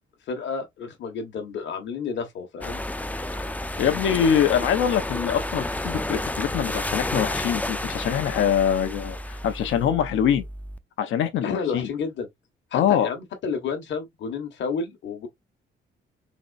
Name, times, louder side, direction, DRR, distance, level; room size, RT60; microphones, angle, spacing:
voice 1, 0.3-2.8 11.4-12.3 12.7-15.3, left 5 dB, 65° left, 1.4 m, -31 dB
sound 1, 2.6-10.8, left 1 dB, 10° left, 0.5 m, -31 dB
voice 2, 3.8-10.4 11.0-11.9 12.7-13.1, left 9 dB, 85° left, 1.0 m, -24 dB
4.1 x 3.1 x 2.5 m
cardioid pair, 90°, 20 cm